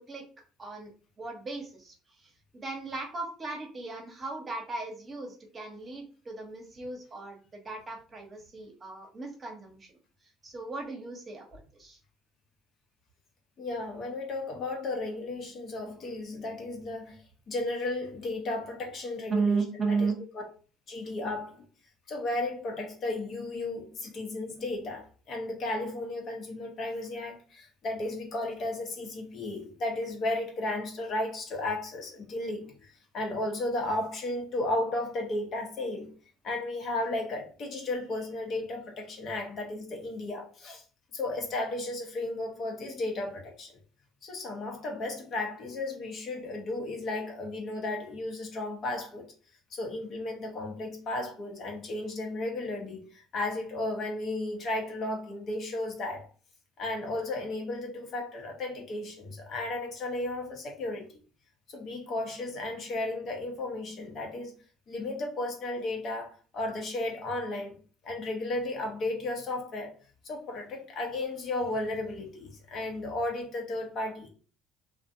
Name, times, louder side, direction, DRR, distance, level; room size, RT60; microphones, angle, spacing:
voice 1, 0.6-0.9 1.2-9.9 10.4-12.0 19.3-20.2, right 4 dB, 35° right, 0.9 m, -35 dB
voice 2, 13.6-19.6 19.9-20.1 20.3-20.4 20.9-21.7 22.1-36.1 36.4-40.8 41.1-43.8 44.2-49.3 49.7-56.3 56.8-61.2 61.7-64.5 64.9-67.8 68.0-69.9 70.2-74.3, left 2 dB, 55° left, 0.8 m, -34 dB
2.5 x 2.1 x 2.5 m
hypercardioid pair, 65°, 0 cm